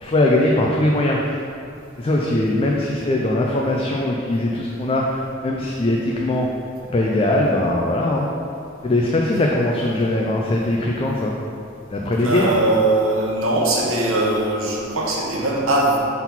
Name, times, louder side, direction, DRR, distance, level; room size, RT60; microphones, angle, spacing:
voice 1, 0.0-1.2 2.0-6.5 6.9-8.3 8.8-11.4 11.9-12.6, left 1 dB, 30° left, -2 dB, 0.4 m, -20 dB
voice 2, 12.2-16.0, right 2 dB, 85° right, -3 dB, 1.1 m, -20 dB
4.4 x 3.9 x 5.5 m, 2.5 s
head